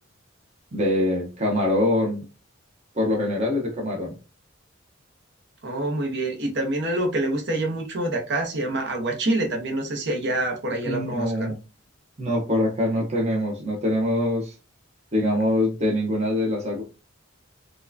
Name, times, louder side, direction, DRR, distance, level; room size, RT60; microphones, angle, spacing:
voice 1, 0.7-2.2 2.9-4.1 10.8-11.6 12.2-14.5 15.1-16.8, left 1 dB, 30° right, -1 dB, 0.8 m, -24 dB
voice 2, 5.6-11.5, right 1 dB, 55° right, 2 dB, 0.9 m, -26 dB
4.4 x 2.3 x 2.7 m, 0.31 s
head